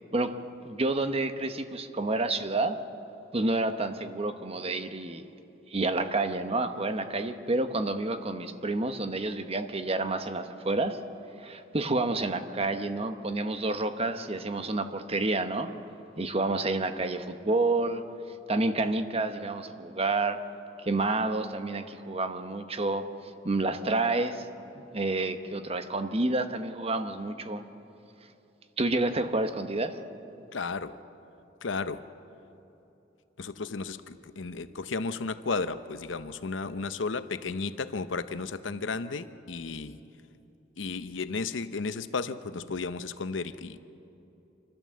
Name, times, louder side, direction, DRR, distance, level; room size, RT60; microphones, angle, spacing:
voice 1, 0.6-2.8 3.3-5.2 5.7-11.0 11.4-15.7 16.2-18.0 18.5-20.4 20.8-23.1 23.4-24.5 24.9-27.6 28.8-30.0, right 2 dB, 30° right, 9 dB, 1.0 m, -29 dB
voice 2, 30.5-31.0 31.6-32.0 33.4-40.0 40.8-43.8, left 4 dB, 80° left, 12 dB, 0.7 m, -33 dB
27.0 x 12.5 x 7.6 m, 2.8 s
head